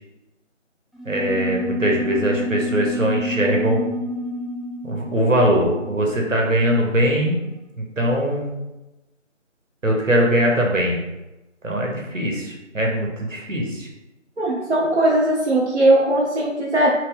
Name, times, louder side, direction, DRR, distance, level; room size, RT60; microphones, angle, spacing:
sound 1, 0.9-6.9, left 1 dB, ahead, 0.3 m, -29 dB
voice 1, 1.0-3.8 4.8-7.4 7.8-8.5 9.8-11.0 11.6-13.9, equal, 80° right, -1 dB, 1.1 m, -21 dB
voice 2, 14.4-16.9, right 1 dB, 60° right, -4 dB, 0.7 m, -19 dB
3.0 x 2.8 x 3.6 m, 1.0 s
figure-of-eight pair, 170°, 38 cm